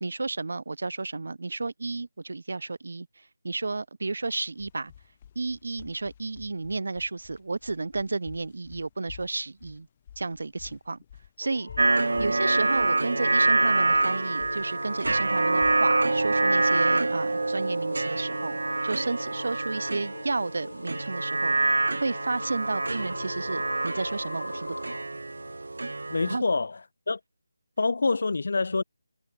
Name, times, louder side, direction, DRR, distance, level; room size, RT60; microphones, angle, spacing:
voice 1, 0.0-3.1 3.4-4.9 5.3-9.9 10.2-11.0 11.4-11.7 12.2-24.9 26.3-26.4, right 3 dB, 45° right, 1.3 m, -32 dB
sound 1, 4.2-17.5, left 9 dB, 15° left, 5.9 m, -51 dB
sound 2, 11.4-25.0, left 2 dB, 75° left, 4.1 m, -43 dB
sound 3, 11.8-26.4, right 2 dB, 65° right, 1.6 m, -26 dB
voice 2, 26.1-26.8 27.1-27.2 27.8-28.8, left 3 dB, 40° left, 0.5 m, -26 dB
figure-of-eight pair, 180°, 0 cm